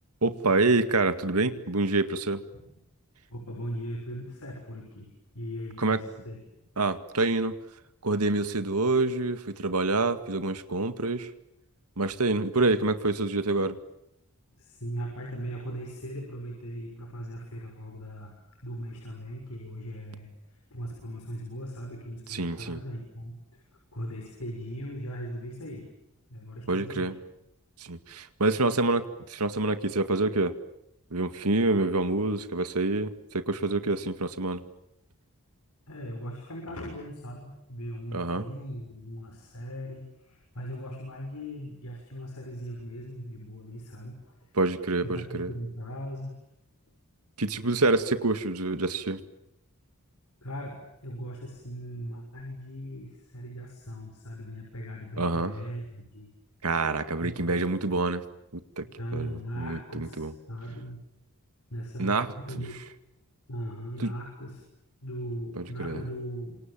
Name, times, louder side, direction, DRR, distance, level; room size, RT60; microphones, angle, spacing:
voice 1, 0.2-2.4 5.8-6.0 6.8-7.6 8.0-11.3 12.0-13.8 22.3-22.8 26.7-27.2 27.8-30.6 31.1-34.6 38.1-38.5 44.6-45.5 47.4-49.2 55.2-55.5 56.6-58.2 58.5-58.8 59.1-60.3 62.0-62.6 64.0-64.1 65.6-66.0, right 2 dB, 80° right, 10 dB, 2.1 m, -27 dB
voice 2, 3.3-5.1 5.3-6.4 14.6-20.3 20.7-23.6 23.9-25.9 26.3-27.1 35.9-44.5 45.0-46.4 50.4-56.3 57.2-57.7 58.8-61.0 61.7-62.8 63.5-64.6 65.0-66.6, equal, 85° left, 2 dB, 6.5 m, -39 dB
29.0 x 27.0 x 7.5 m, 0.83 s
head